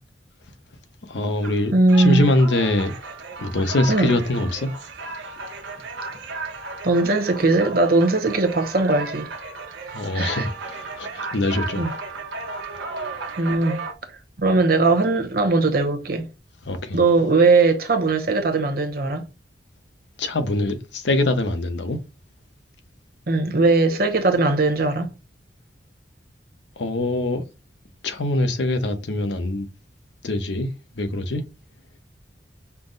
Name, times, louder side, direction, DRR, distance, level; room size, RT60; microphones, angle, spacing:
voice 1, 1.1-2.9 3.4-4.7 9.9-11.8 16.6-17.0 20.2-22.0 26.8-27.4 28.0-29.7 30.2-30.7 31.0-31.4, left 2 dB, 80° left, 0.7 m, -23 dB
sound 1, 1.4-13.9, right 3 dB, 90° right, 0.8 m, -35 dB
voice 2, 1.7-2.3 3.9-4.2 6.8-9.3 9.9-10.5 11.8-11.9 13.4-13.8 14.4-16.3 16.9-19.2 23.3-25.1, right 3 dB, 55° right, 0.9 m, -19 dB
5.7 x 2.0 x 3.8 m
head